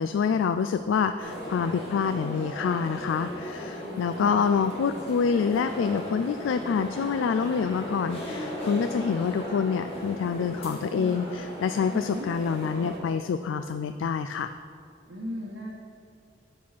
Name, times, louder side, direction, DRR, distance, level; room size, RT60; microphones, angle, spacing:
voice 1, 0.0-14.5, left 6 dB, 90° left, 10 dB, 0.3 m, -27 dB
sound 1, 1.2-13.0, equal, 30° left, 1.8 m, -37 dB
voice 2, 3.8-4.3 10.9-11.2 11.9-12.3 15.1-15.7, equal, 75° right, -4 dB, 1.2 m, -37 dB
8.4 x 6.3 x 5.9 m, 2.4 s
head